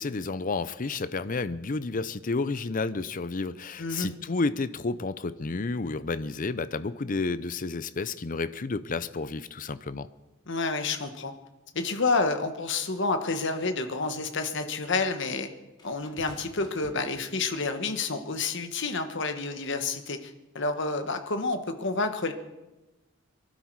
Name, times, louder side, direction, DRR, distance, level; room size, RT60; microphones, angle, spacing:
voice 1, 0.0-10.1, left 3 dB, 40° left, 14 dB, 0.6 m, -31 dB
voice 2, 3.8-4.1 10.5-11.3 11.7-15.5 15.8-22.3, left 3 dB, 60° left, 8 dB, 1.3 m, -29 dB
sound 1, 15.8-17.7 18.6-18.8, left 1 dB, 20° left, 2.6 m, -51 dB
23.5 x 12.0 x 4.7 m, 1.1 s
head